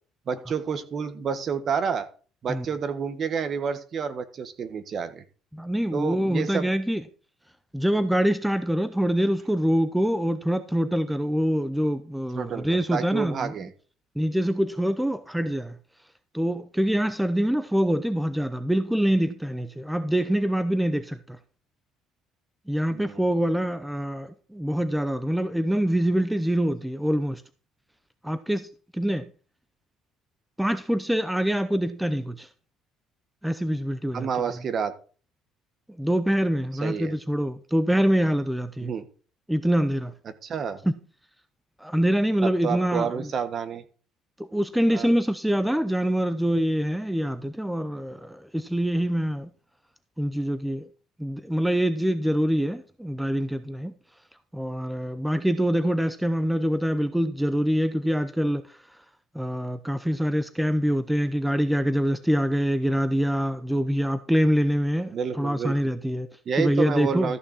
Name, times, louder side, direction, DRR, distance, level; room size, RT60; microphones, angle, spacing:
voice 1, 0.3-2.1 2.4-5.2 5.9-6.7 12.3-13.7 22.9-23.2 34.1-34.9 36.8-37.1 38.8-39.0 40.4-40.8 42.4-43.8 44.9-45.1 65.1-65.8 66.4-67.4, right 6 dB, 40° right, 1.4 m, -29 dB
voice 2, 5.5-7.0 7.7-13.5 14.2-15.8 16.3-21.4 22.7-27.4 28.2-29.2 30.6-32.5 33.4-34.3 36.0-38.9 39.5-40.1 40.8-41.0 41.8-43.3 44.5-49.5 50.2-50.9 51.2-53.9 54.5-58.8 59.3-66.3 66.6-67.3, equal, 5° right, 0.7 m, -25 dB
14.0 x 6.3 x 4.3 m
cardioid pair, 125°, 0 cm